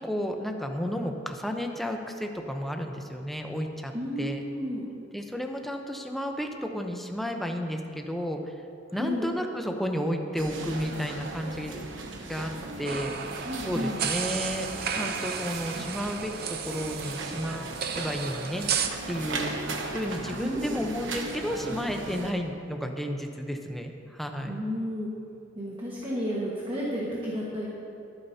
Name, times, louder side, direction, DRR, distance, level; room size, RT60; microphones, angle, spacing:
voice 1, 0.0-3.9 4.2-4.4 5.1-8.4 8.9-11.8 12.3-12.5 12.8-13.2 13.6-17.7 18.0-18.6 19.1-19.7 19.9-24.6, equal, ahead, 3 dB, 0.8 m, -32 dB
voice 2, 3.9-4.9 8.9-9.3 13.4-14.0 20.4-20.8 24.5-25.1 25.5-27.7, equal, 30° right, -5 dB, 1.6 m, -32 dB
sound 1, 10.4-22.3, right 2 dB, 80° right, 1.1 m, -37 dB
sound 2, 12.8-18.9, right 7 dB, 55° right, 0.7 m, -33 dB
22.5 x 8.9 x 2.8 m, 2.6 s
head